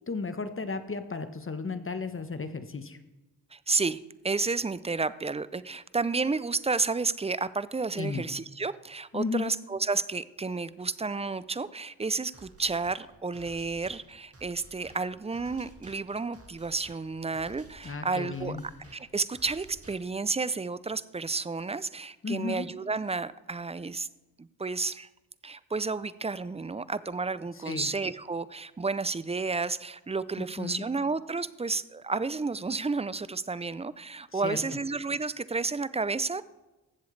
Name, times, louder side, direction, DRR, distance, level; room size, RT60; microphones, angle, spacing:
voice 1, 0.1-3.0 7.9-8.3 9.1-9.5 17.8-18.6 22.2-22.7 27.7-27.9 30.6-30.9 34.3-34.6, left 4 dB, 30° left, 10 dB, 1.0 m, -34 dB
voice 2, 3.5-24.1 24.4-25.1 25.4-36.4, right 4 dB, 15° right, 17 dB, 0.4 m, -31 dB
sound 1, 12.3-20.3, right 1 dB, 35° right, 2.1 m, -54 dB
14.5 x 7.6 x 3.3 m, 1.1 s
supercardioid pair, 45°, 43 cm